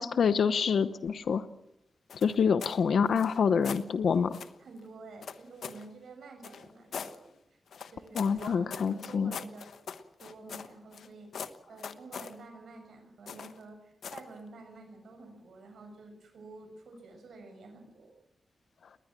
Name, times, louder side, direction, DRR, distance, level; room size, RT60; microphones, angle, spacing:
voice 1, 0.0-1.4 2.2-4.4 8.1-9.3, left 6 dB, 70° left, 12 dB, 0.9 m, -26 dB
sound 1, 2.1-2.8 3.1-3.9 4.3-4.6 5.2-5.9 6.4-7.2 7.7-11.1 11.3-12.3 13.3-13.6 14.0-14.3, left 6 dB, 90° left, 1.3 m, -42 dB
voice 2, 4.6-7.6 7.9-9.7 10.2-18.1, right 3 dB, 80° right, 5 dB, 7.0 m, -49 dB
20.5 x 20.0 x 7.5 m, 0.81 s
wide cardioid pair, 170°, 0 cm